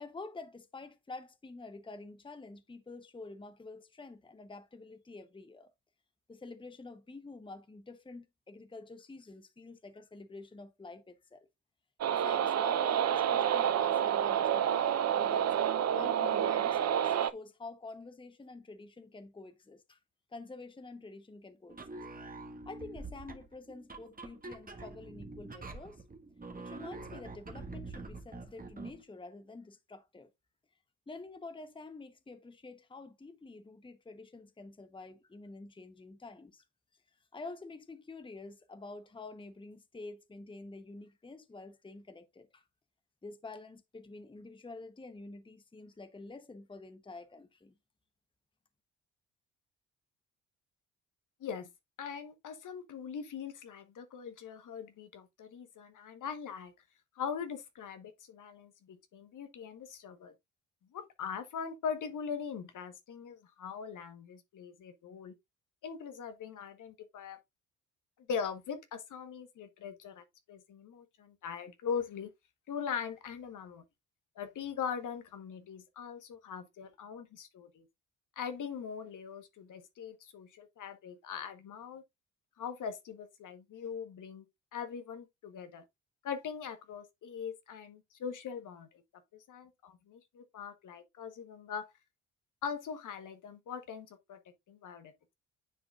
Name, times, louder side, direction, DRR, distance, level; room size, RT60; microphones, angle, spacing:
voice 1, 0.0-5.7 6.3-11.5 12.1-15.5 15.9-20.0 20.3-22.0 22.7-26.0 26.6-30.3 31.1-36.6 37.3-42.6 43.2-47.7, left 3 dB, 15° left, 1.0 m, -48 dB
sound 1, 12.0-17.3, right 9 dB, 45° right, 0.7 m, -29 dB
sound 2, 21.7-29.0, right 3 dB, 25° right, 1.6 m, -46 dB
voice 2, 52.0-56.7 57.2-60.3 60.9-65.3 65.8-67.4 68.3-72.3 72.7-73.8 74.4-77.8 78.4-82.0 82.6-84.4 84.7-85.8 86.2-88.9 89.3-91.9 92.6-94.4 94.7-95.1, left 7 dB, 55° left, 1.4 m, -41 dB
9.8 x 4.8 x 2.4 m
hypercardioid pair, 50°, 37 cm